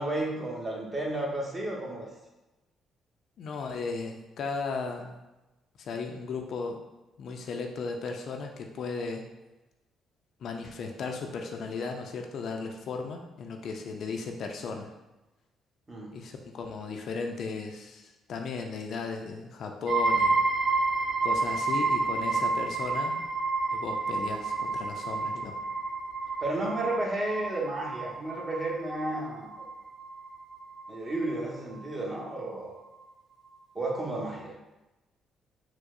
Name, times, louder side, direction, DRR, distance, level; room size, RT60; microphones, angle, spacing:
voice 1, 0.0-2.1 15.9-16.2 26.4-29.6 30.9-32.8 33.7-34.5, right 1 dB, 30° right, -3 dB, 1.0 m, -32 dB
voice 2, 3.4-5.2 5.8-6.8 7.2-9.2 10.4-14.9 16.1-20.4 21.2-23.2 23.7-25.6, left 4 dB, 65° left, 3 dB, 0.4 m, -36 dB
sound 1, 19.9-31.3, right 3 dB, 70° right, 0.8 m, -30 dB
4.6 x 2.0 x 2.5 m, 1.0 s
supercardioid pair, 65°, 0 cm